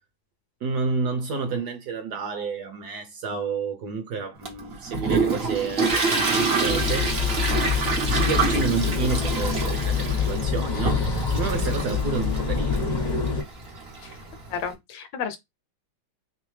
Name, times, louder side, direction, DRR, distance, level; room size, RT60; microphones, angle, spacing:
voice 1, 0.6-7.3 8.1-12.8, right 4 dB, 65° right, 1.1 m, -30 dB
Toilet flush, 4.5-14.7, right 4 dB, 50° right, 0.7 m, -27 dB
sound 1, 6.7-13.4, left 6 dB, 60° left, 0.4 m, -26 dB
voice 2, 14.5-15.4, left 7 dB, 75° left, 1.2 m, -32 dB
3.2 x 3.2 x 3.2 m
omnidirectional pair, 2.3 m